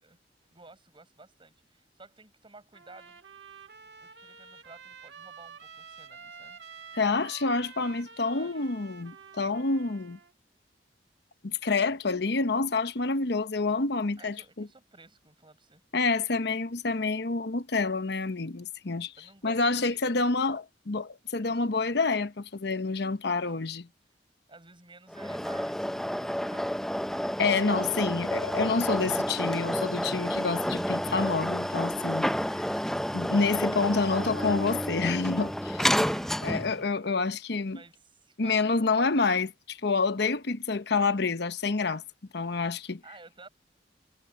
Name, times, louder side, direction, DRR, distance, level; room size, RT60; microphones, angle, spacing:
voice 1, 0.5-3.2 4.0-6.6 8.2-8.7 14.2-15.8 19.2-20.1 23.4-23.6 24.5-26.8 33.5-33.8 35.7-36.5 37.1-37.4 37.7-39.1 42.8-43.5, right 3 dB, 30° right, 6.3 m, -54 dB
Trumpet, 2.7-10.3, right 6 dB, 70° right, 1.8 m, -49 dB
voice 2, 6.9-10.2 11.4-14.7 15.9-19.1 19.4-23.9 27.4-32.6 33.1-35.8 36.4-37.8 38.4-42.0 42.3-43.0, left 4 dB, 70° left, 1.0 m, -28 dB
sound 1, 25.1-36.8, equal, ahead, 0.5 m, -30 dB
head